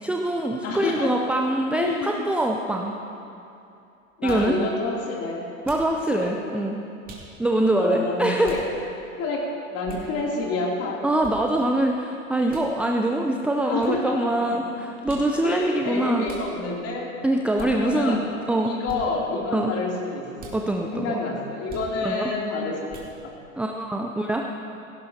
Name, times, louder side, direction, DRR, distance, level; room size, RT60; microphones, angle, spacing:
voice 1, 0.0-2.9 4.2-4.6 5.7-6.8 7.4-8.5 11.0-16.3 17.2-18.2 18.5-18.7 19.5-19.7 20.5-21.2 22.0-22.3 23.6-24.4, right 1 dB, 5° right, 1 dB, 0.6 m, -24 dB
voice 2, 0.6-1.1 1.8-2.2 4.2-5.4 6.1-6.3 7.8-8.6 9.2-11.0 13.6-14.6 15.4-17.1 17.6-18.3 18.6-20.5 20.9-23.3, left 3 dB, 35° left, -2 dB, 3.1 m, -28 dB
sound 1, 4.3-4.5 5.6-5.9 7.0-7.3 8.4-8.7 9.8-10.1 11.2-11.4 12.5-12.7 13.8-14.0 15.0-15.3 16.2-16.5 17.6-17.7 18.8-19.0 20.4-20.6 21.7-21.9 22.9-23.1, right 5 dB, 20° right, 2.7 m, -41 dB
17.0 x 17.0 x 2.9 m, 2.7 s
figure-of-eight pair, 90°, 40 cm